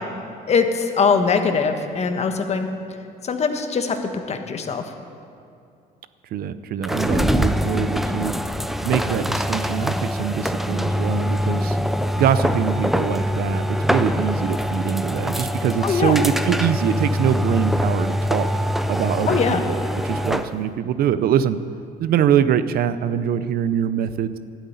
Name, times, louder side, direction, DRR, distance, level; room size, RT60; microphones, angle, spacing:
voice 1, 0.5-2.7 3.2-4.0 4.3-4.8 15.8-16.2 19.3-19.6, left 5 dB, 40° left, 6 dB, 1.3 m, -21 dB
voice 2, 6.3-8.3 8.8-11.8 12.2-18.5 18.9-21.6 22.0-24.4, right 9 dB, 65° right, 13 dB, 0.6 m, -23 dB
sound 1, 6.8-20.6, equal, ahead, 0.5 m, -23 dB
12.0 x 8.1 x 9.5 m, 2.5 s
cardioid pair, 110°, 17 cm